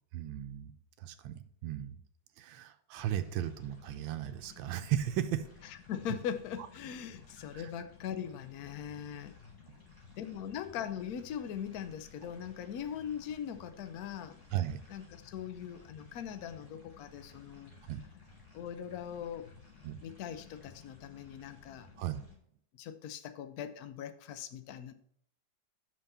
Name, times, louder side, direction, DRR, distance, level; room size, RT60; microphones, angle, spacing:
voice 1, 0.1-0.7 1.0-2.0 2.4-5.4 6.6-6.7 7.5-7.7 14.5-14.8 17.8-18.0 19.8-20.0 22.0-22.2, right 11 dB, 90° right, 8 dB, 1.4 m, -36 dB
sound 1, 3.0-22.3, left 4 dB, 10° left, 2.2 m, -56 dB
voice 2, 5.9-9.3 10.2-14.4 14.9-17.7 18.5-19.5 20.0-21.9 22.7-24.9, left 9 dB, 65° left, 10 dB, 1.0 m, -41 dB
5.7 x 5.3 x 6.8 m, 0.66 s
omnidirectional pair, 2.1 m